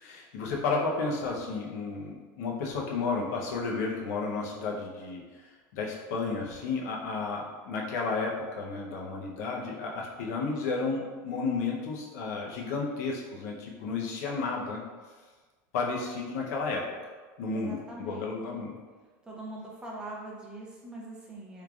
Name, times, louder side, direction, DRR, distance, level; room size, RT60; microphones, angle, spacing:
voice 1, 0.0-5.5 5.7-14.8 15.7-16.8 17.4-18.7, left 4 dB, 80° left, -2 dB, 0.8 m, -32 dB
voice 2, 17.5-18.7 19.2-21.6, right 1 dB, 10° right, -3 dB, 0.6 m, -42 dB
3.6 x 3.2 x 2.4 m, 1.4 s
supercardioid pair, 155°, 9 cm